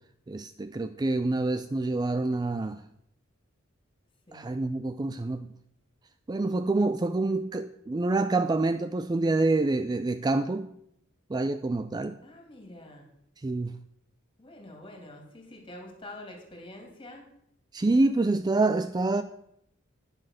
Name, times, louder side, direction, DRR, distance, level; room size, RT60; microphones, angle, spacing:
voice 1, 0.3-2.8 4.3-5.5 6.3-10.7 11.3-12.2 13.4-13.8 17.7-19.2, right 2 dB, 20° right, 0.4 m, -27 dB
voice 2, 12.2-13.0 14.4-17.3, left 1 dB, 25° left, 2.9 m, -46 dB
9.9 x 7.7 x 6.5 m
head